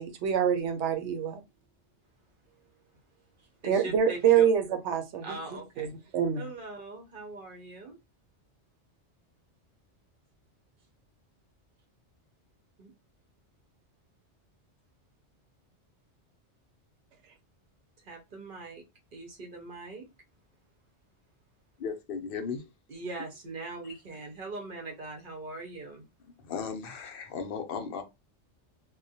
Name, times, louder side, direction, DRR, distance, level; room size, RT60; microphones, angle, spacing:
voice 1, 0.0-1.4 3.6-6.4, right 8 dB, 80° right, 0.9 m, -26 dB
voice 2, 3.4-4.5 5.2-6.1 6.4-8.0 12.8-12.9 18.0-18.8 19.1-20.1 22.9-26.0, right 3 dB, 55° right, 0.7 m, -41 dB
voice 3, 21.8-22.7 23.8-24.0 26.2-28.0, left 6 dB, 60° left, 0.7 m, -36 dB
2.3 x 2.1 x 2.6 m
omnidirectional pair, 1.2 m